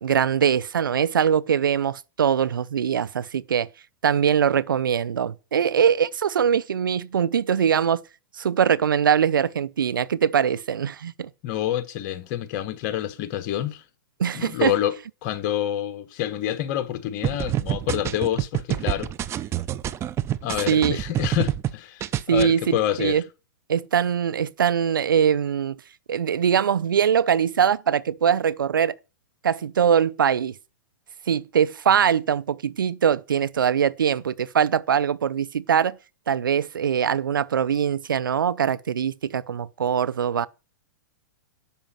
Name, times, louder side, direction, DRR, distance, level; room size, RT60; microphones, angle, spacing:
voice 1, 0.0-3.7 4.0-8.0 8.3-11.3 14.2-14.7 20.7-21.0 22.3-23.2 23.7-25.8 26.1-28.9 29.4-30.5 31.3-36.0 36.3-40.5, right 8 dB, 90° right, 0.7 m, -22 dB
voice 2, 11.4-13.8 14.3-15.0 15.2-19.1 20.4-23.2, left 11 dB, 45° left, 1.3 m, -27 dB
sound 1, 17.2-21.7 22.0-22.4, right 12 dB, 25° right, 0.7 m, -27 dB
11.5 x 5.1 x 7.4 m
hypercardioid pair, 125°, 11 cm